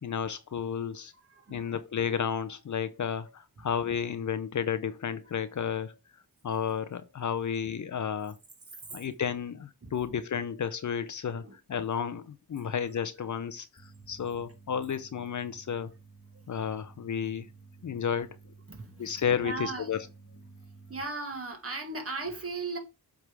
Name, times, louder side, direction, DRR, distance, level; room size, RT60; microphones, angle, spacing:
voice 1, 0.0-1.1 1.5-6.0 6.4-8.4 8.9-15.9 16.5-17.5 17.8-18.3 19.0-20.1, left 7 dB, 50° left, 0.7 m, -32 dB
voice 2, 1.2-1.8 3.6-3.7 5.2-5.3 8.9-9.0 9.8-10.0 11.4-11.6 12.6-12.8 15.3-15.4 18.7-20.0 20.9-22.8, right 3 dB, 35° right, 2.1 m, -38 dB
sound 1, 13.8-21.0, right 4 dB, 35° left, 1.5 m, -53 dB
7.9 x 3.7 x 4.7 m
cardioid pair, 80°, 39 cm